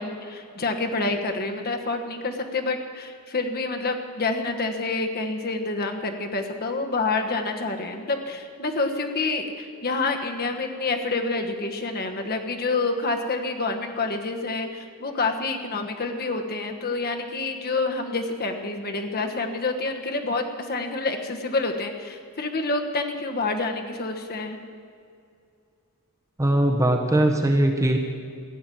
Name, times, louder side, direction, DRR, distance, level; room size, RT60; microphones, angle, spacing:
voice 1, 0.0-24.6, left 3 dB, 45° left, 4 dB, 1.3 m, -28 dB
voice 2, 26.4-28.0, right 1 dB, 15° right, 3 dB, 0.8 m, -20 dB
15.5 x 7.6 x 9.2 m, 2.4 s
head